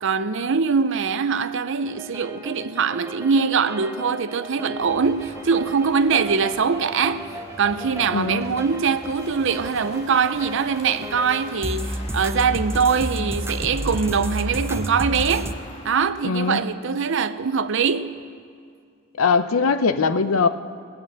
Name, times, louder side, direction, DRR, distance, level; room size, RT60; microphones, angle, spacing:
voice 1, 0.0-15.6 15.8-18.2, right 5 dB, 65° right, 0.6 m, -23 dB
sound 1, 1.9-15.5, right 1 dB, 10° right, 0.5 m, -33 dB
Crow, 4.7-16.1, left 2 dB, 30° left, 1.7 m, -42 dB
voice 2, 8.1-8.4 16.2-16.6 19.2-20.5, left 5 dB, 85° left, 0.7 m, -20 dB
17.5 x 8.6 x 7.5 m
head